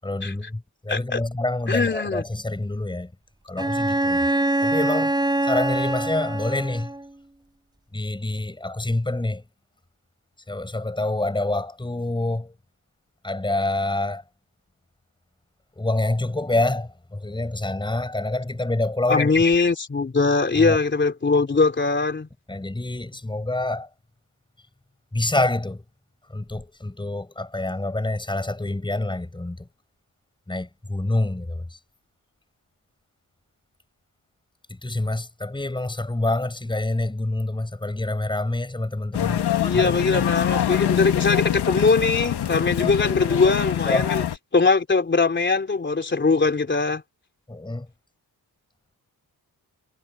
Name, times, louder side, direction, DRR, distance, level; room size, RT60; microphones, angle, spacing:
voice 1, 0.0-3.1 3.5-4.2 4.6-5.2 5.4-6.9 7.9-9.4 10.5-12.5 13.2-14.2 15.8-19.3 20.6-20.8 22.5-23.9 25.1-25.8 26.3-29.6 30.5-31.8 34.8-39.4 39.7-40.2 42.5-43.0 43.8-44.1 47.5-47.9, left 2 dB, 10° left, 7.2 m, -27 dB
voice 2, 0.9-1.2 1.7-2.2 19.1-22.3 39.6-44.2 44.5-47.0, left 4 dB, 30° left, 3.5 m, -21 dB
Bowed string instrument, 3.6-7.1, right 1 dB, 10° right, 5.8 m, -24 dB
sound 1, 39.1-44.4, left 10 dB, 85° left, 2.0 m, -24 dB
wide cardioid pair, 160°, 39 cm